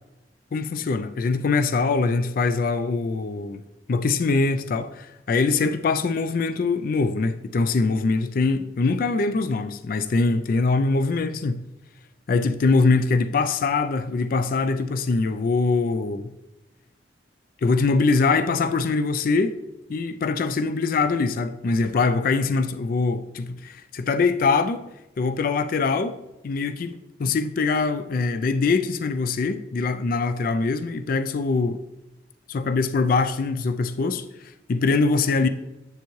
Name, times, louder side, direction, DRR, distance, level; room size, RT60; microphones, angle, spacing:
voice 1, 0.5-3.6 3.9-11.6 12.3-16.3 17.6-19.6 19.9-24.9 25.2-26.9 27.2-31.8 32.5-35.5, left 4 dB, 50° left, 0.3 m, -23 dB
7.9 x 7.0 x 3.1 m
head